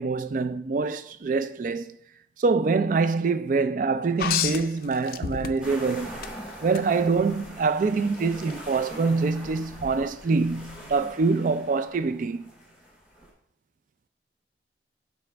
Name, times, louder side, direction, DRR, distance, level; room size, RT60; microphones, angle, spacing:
voice 1, 0.0-2.0 2.4-6.2 6.6-12.5, right 4 dB, 50° right, 0.4 m, -25 dB
sound 1, 4.2-5.8 6.2-6.8 8.4-8.5, left 8 dB, 55° left, 0.4 m, -29 dB
sound 2, 5.6-13.3, equal, 5° right, 3.4 m, -43 dB
9.0 x 6.0 x 3.4 m
head